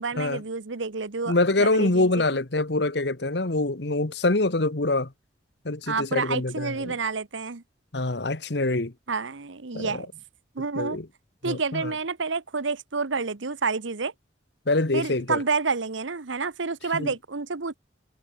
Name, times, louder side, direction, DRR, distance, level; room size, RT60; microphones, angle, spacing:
voice 1, 0.0-2.2 5.9-7.6 9.1-10.1 10.5-11.0 11.4-14.1 14.9-17.7, right 4 dB, 85° right, 1.1 m, -29 dB
voice 2, 1.3-5.1 5.6-7.0 7.9-8.9 9.7-10.0 10.7-11.1 11.4-11.9 14.7-15.4 16.9-17.1, left 2 dB, 65° left, 1.4 m, -25 dB
head